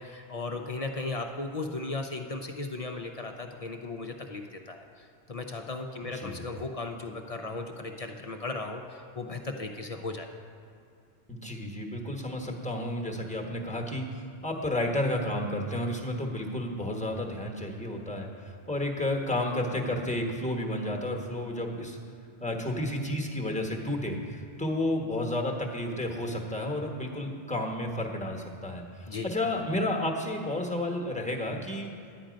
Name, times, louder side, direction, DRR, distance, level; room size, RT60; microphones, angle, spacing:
voice 1, 0.0-10.3 29.1-29.3, left 3 dB, 45° left, 4 dB, 0.5 m, -36 dB
voice 2, 11.3-22.0 22.4-31.9, left 1 dB, 5° left, 1 dB, 1.0 m, -31 dB
10.5 x 8.8 x 5.1 m, 2.5 s
omnidirectional pair, 1.1 m